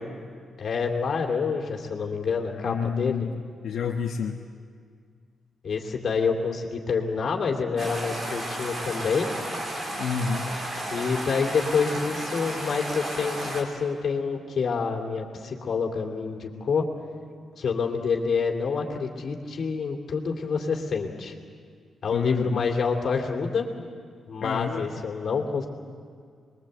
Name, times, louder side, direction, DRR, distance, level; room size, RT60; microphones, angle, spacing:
voice 1, 0.6-3.3 5.6-9.3 10.9-16.8 17.6-21.3 22.0-23.7 24.3-25.7, left 5 dB, 45° left, 2 dB, 3.0 m, -27 dB
voice 2, 2.6-3.3 3.6-4.3 10.0-10.5 22.1-22.7 24.4-24.8, left 6 dB, 70° left, 0 dB, 1.2 m, -29 dB
sound 1, 7.8-13.6, right 1 dB, 30° right, 3.8 m, -33 dB
26.0 x 22.0 x 8.1 m, 2.1 s
wide cardioid pair, 165°, 0 cm